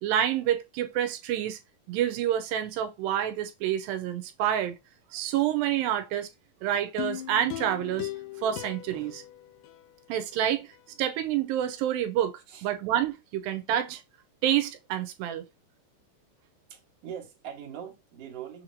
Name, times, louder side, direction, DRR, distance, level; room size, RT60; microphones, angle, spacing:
voice 1, 0.0-1.6 1.9-4.8 5.1-6.3 6.6-8.1 8.4-9.2 10.1-10.7 11.0-14.0 14.4-15.4, right 11 dB, 85° right, 2.3 m, -28 dB
sound 1, 7.0-10.3 10.7-10.8, left 14 dB, 80° left, 2.2 m, -38 dB
voice 2, 16.7-18.6, right 9 dB, 60° right, 1.8 m, -42 dB
6.4 x 2.9 x 2.5 m
omnidirectional pair, 4.1 m